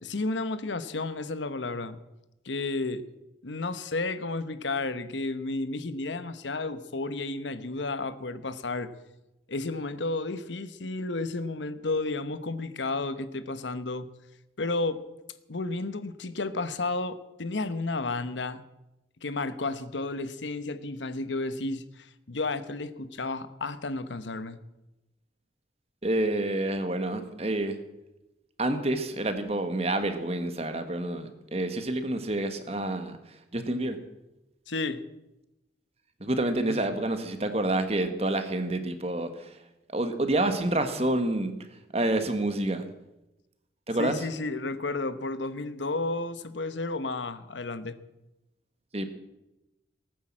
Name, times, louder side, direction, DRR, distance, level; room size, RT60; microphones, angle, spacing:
voice 1, 0.0-2.0 2.4-3.1 3.4-8.9 9.5-14.1 14.6-15.0 15.5-18.6 19.2-24.6 34.7-35.0 36.7-36.8 44.0-48.0, left 3 dB, 80° left, 13 dB, 1.0 m, -32 dB
voice 2, 26.0-27.8 28.6-34.0 36.2-39.6 39.9-41.5 41.9-42.9 43.9-44.2 48.9-49.1, right 1 dB, 35° right, 8 dB, 1.5 m, -28 dB
18.5 x 9.4 x 7.5 m, 0.95 s
head